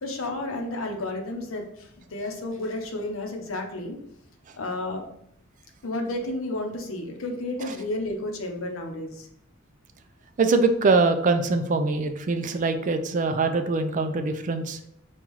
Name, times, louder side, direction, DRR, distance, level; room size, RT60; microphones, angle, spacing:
voice 1, 0.0-4.0 4.6-5.0 5.8-9.3, left 2 dB, 85° left, 3 dB, 0.7 m, -32 dB
voice 2, 10.4-14.8, right 3 dB, 40° right, 8 dB, 0.4 m, -23 dB
5.4 x 2.3 x 3.0 m, 0.77 s
head